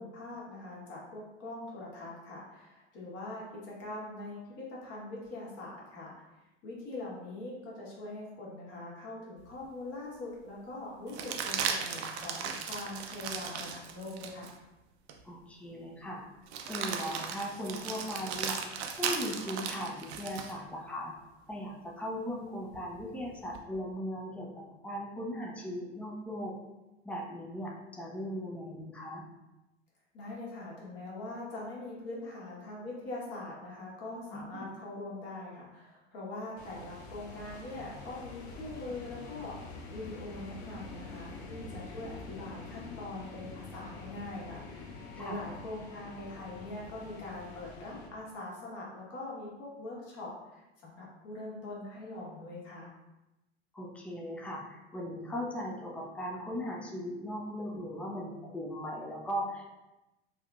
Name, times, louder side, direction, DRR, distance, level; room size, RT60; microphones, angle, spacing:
voice 1, 0.0-6.1 6.6-14.5 30.1-52.9, left 2 dB, 45° left, -5 dB, 1.4 m, -42 dB
sound 1, 9.5-9.6 11.1-14.5 15.1-15.2 16.5-20.6 22.7-23.6, right 6 dB, 70° right, 0.5 m, -36 dB
voice 2, 15.2-16.2 16.7-18.6 19.0-21.1 21.5-26.6 27.0-29.3 34.3-34.7 45.1-45.5 53.7-59.7, equal, 5° left, 0 dB, 0.4 m, -38 dB
sound 2, 36.6-48.1, left 3 dB, 70° left, 0.7 m, -46 dB
3.3 x 2.5 x 2.4 m, 1.0 s
hypercardioid pair, 90°, 34 cm